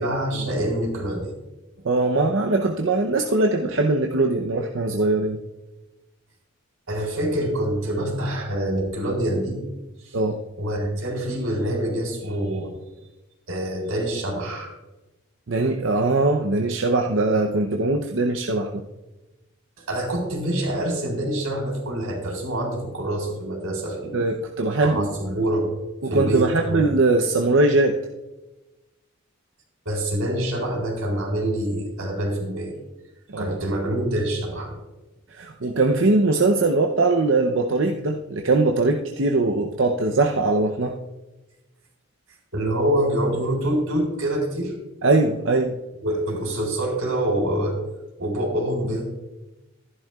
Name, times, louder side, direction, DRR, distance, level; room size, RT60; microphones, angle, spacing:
voice 1, 0.0-1.3 6.9-9.6 10.0-10.2 10.6-12.7 13.5-14.7 19.9-24.1 24.8-25.7 26.0-26.9 29.9-32.7 33.4-34.8 42.5-44.7 46.0-47.8 48.2-49.1, right 1 dB, 90° right, 0 dB, 3.8 m, -26 dB
voice 2, 1.8-5.4 10.1-10.4 15.5-18.9 24.1-25.1 26.0-28.0 33.3-33.6 35.3-41.0 45.0-45.8, right 2 dB, 60° right, 2 dB, 0.7 m, -21 dB
14.5 x 11.0 x 2.3 m, 1.0 s
head